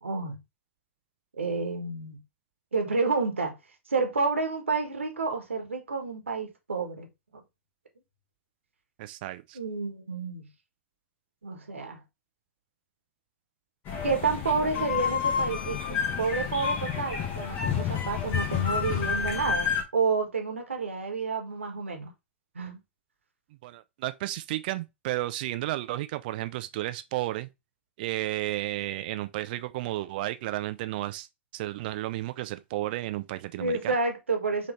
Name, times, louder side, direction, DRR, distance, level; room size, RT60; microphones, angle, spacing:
voice 1, 0.0-0.4 1.4-2.2 2.7-3.6 3.9-7.1 9.5-10.5 11.4-12.0 14.0-22.1 22.5-22.8 33.6-34.7, right 4 dB, 75° right, 1.4 m, -30 dB
voice 2, 9.0-9.6 23.6-27.5 28.0-31.3 31.5-33.9, right 16 dB, 45° right, 0.5 m, -33 dB
sound 1, 13.9-19.8, left 7 dB, 30° left, 1.3 m, -29 dB
5.3 x 3.1 x 3.2 m
figure-of-eight pair, 100°, 7 cm